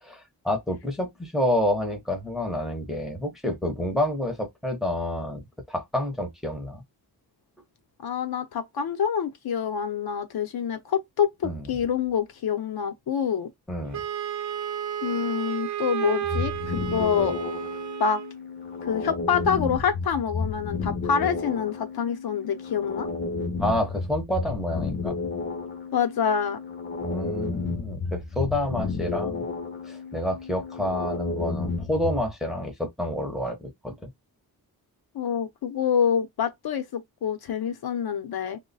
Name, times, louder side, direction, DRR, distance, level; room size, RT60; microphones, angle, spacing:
voice 1, 0.0-6.8 11.4-11.6 13.7-14.0 23.6-25.2 27.0-29.4 29.9-34.1, left 1 dB, ahead, 0.7 m, -29 dB
voice 2, 8.0-13.5 15.0-17.4 18.0-18.2 18.8-23.1 25.9-26.6 35.1-38.6, left 7 dB, 75° left, 0.7 m, -26 dB
Wind instrument woodwind instrument, 13.9-18.3, right 10 dB, 50° right, 0.6 m, -32 dB
sound 1, 16.2-32.3, left 4 dB, 30° left, 0.6 m, -32 dB
3.0 x 2.1 x 3.9 m
wide cardioid pair, 170°, 37 cm